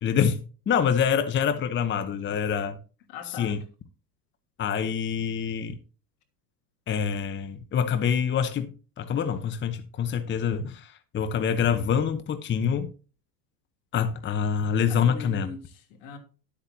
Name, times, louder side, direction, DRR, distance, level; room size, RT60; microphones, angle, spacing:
voice 1, 0.0-2.8 3.4-3.6 4.6-5.8 6.9-12.9 13.9-15.5, left 7 dB, 25° left, 0.9 m, -26 dB
voice 2, 3.1-3.6 14.9-16.2, left 4 dB, 65° left, 3.1 m, -40 dB
12.0 x 8.4 x 2.8 m
hypercardioid pair, 100°, 47 cm